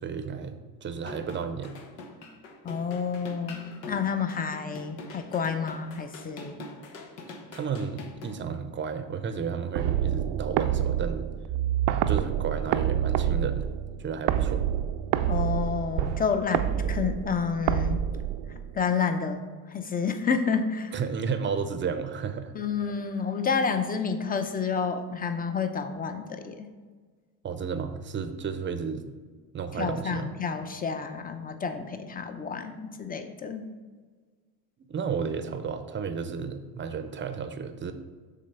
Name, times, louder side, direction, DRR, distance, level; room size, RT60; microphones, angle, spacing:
voice 1, 0.0-1.7 7.5-11.3 12.1-13.7 14.0-14.6 20.9-22.5 27.4-29.0 29.5-30.3 34.9-37.9, right 6 dB, 25° right, 9 dB, 0.6 m, -32 dB
sound 1, 1.0-8.3, left 3 dB, 90° left, 1.0 m, -43 dB
voice 2, 2.6-3.6 3.9-6.6 15.3-18.0 18.7-19.4 19.7-20.9 22.5-26.7 29.7-33.7, left 6 dB, 20° left, 8 dB, 0.6 m, -29 dB
sound 2, 9.8-18.8, right 10 dB, 65° right, 0.5 m, -27 dB
6.4 x 3.8 x 5.5 m, 1.5 s
supercardioid pair, 90°, 47 cm